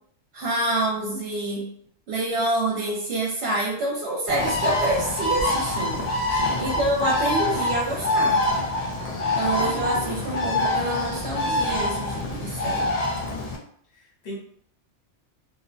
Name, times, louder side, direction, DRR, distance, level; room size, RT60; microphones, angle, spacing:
voice 1, 0.3-1.7 2.1-6.1 6.6-8.4 9.4-12.9, right 2 dB, 70° right, -3 dB, 0.9 m, -27 dB
Bird, 4.3-13.6, left 2 dB, 80° left, 0.3 m, -25 dB
voice 2, 6.3-6.7 14.0-14.4, left 2 dB, 45° left, -2 dB, 0.7 m, -36 dB
2.7 x 2.0 x 2.5 m, 0.65 s
omnidirectional pair, 1.2 m